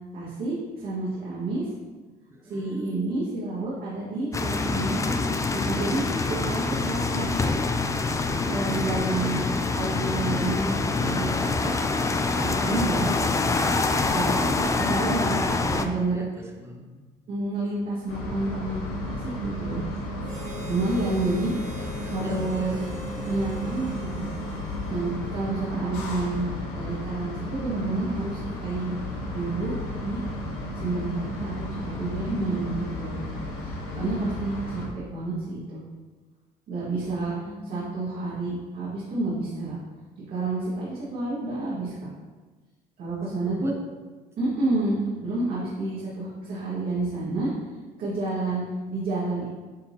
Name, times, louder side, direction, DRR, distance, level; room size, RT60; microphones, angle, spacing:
voice 1, 0.1-1.7 2.4-7.4 8.4-9.4 9.7-10.7 11.0-13.1 14.1-16.3 17.3-18.7 19.0-19.8 20.7-21.5 22.1-22.9 23.3-24.3 24.9-29.0 29.3-30.2 30.7-33.3 33.6-35.8 36.7-37.3 37.6-39.8 40.3-42.1 43.0-43.7 44.4-47.5 48.0-49.5, right 2 dB, 65° right, -9 dB, 2.0 m, -29 dB
voice 2, 2.3-2.9 8.5-10.1 16.1-17.1 20.9-22.8 25.2-25.8 37.1-38.0 43.2-43.8, equal, 15° right, 1 dB, 1.0 m, -42 dB
sound 1, 4.3-15.9, left 3 dB, 20° left, 0.4 m, -25 dB
sound 2, 18.1-34.9, left 1 dB, 85° left, 1.8 m, -34 dB
Harmonica, 20.2-25.7, left 1 dB, 45° right, 1.6 m, -43 dB
9.3 x 4.0 x 2.9 m, 1.3 s
cardioid pair, 110°, 17 cm